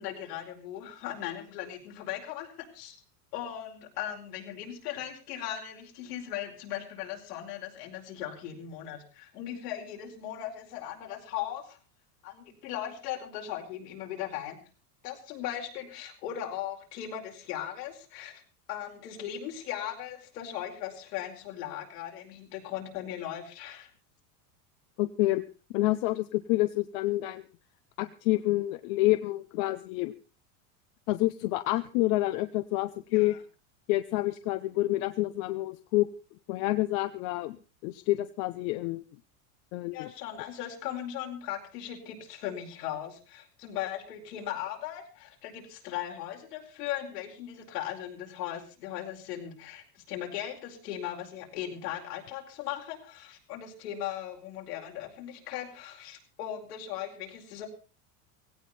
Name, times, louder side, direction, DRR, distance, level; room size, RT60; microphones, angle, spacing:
voice 1, 0.0-3.0 3.3-11.8 12.2-14.6 15.0-18.4 18.7-23.9 33.1-33.4 39.9-57.7, left 11 dB, 80° left, 1 dB, 4.9 m, -38 dB
voice 2, 25.0-25.4 25.7-27.5 28.0-30.1 31.1-33.4 33.9-36.1 36.5-37.6 37.8-39.1 39.7-40.1, left 18 dB, 60° left, 11 dB, 0.9 m, -28 dB
17.0 x 16.5 x 4.2 m, 0.33 s
supercardioid pair, 130°, 46 cm